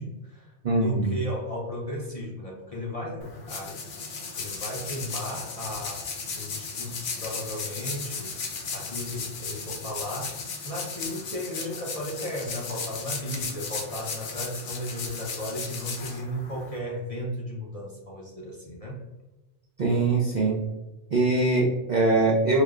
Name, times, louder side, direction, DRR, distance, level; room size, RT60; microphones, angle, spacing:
voice 1, 0.0-3.8 4.3-6.1 6.3-8.4 8.7-19.1, equal, 45° left, -4 dB, 0.5 m, -35 dB
voice 2, 0.6-1.1 19.8-20.6 21.1-22.6, right 2 dB, 60° right, -3 dB, 0.4 m, -22 dB
sound 1, 3.2-16.8, left 4 dB, 75° left, 1.0 m, -36 dB
4.9 x 2.0 x 2.3 m, 1.1 s
omnidirectional pair, 1.2 m